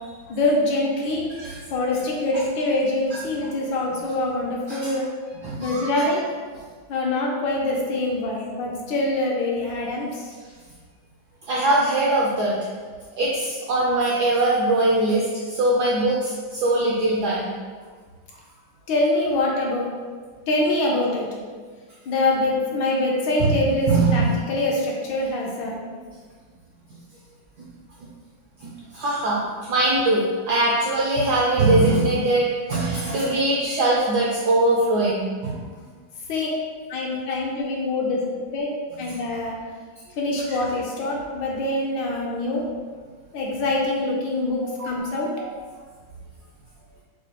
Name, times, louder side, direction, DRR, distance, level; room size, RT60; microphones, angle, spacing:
voice 1, 0.3-1.2 1.7-5.1 5.6-6.3 6.9-10.3 18.9-19.9 20.5-21.3 22.1-25.8 36.3-36.5 36.9-38.2 38.5-38.7 39.0-39.6 40.2-42.6 43.3-45.3, left 2 dB, 70° left, -2 dB, 1.2 m, -24 dB
voice 2, 5.4-6.1 11.5-12.6 13.2-17.5 23.4-23.5 23.9-24.3 28.0-28.1 28.6-35.6 44.4-45.0 45.4-45.5, right 2 dB, 80° right, -5 dB, 0.9 m, -22 dB
6.1 x 2.2 x 2.9 m, 1.5 s
omnidirectional pair, 2.3 m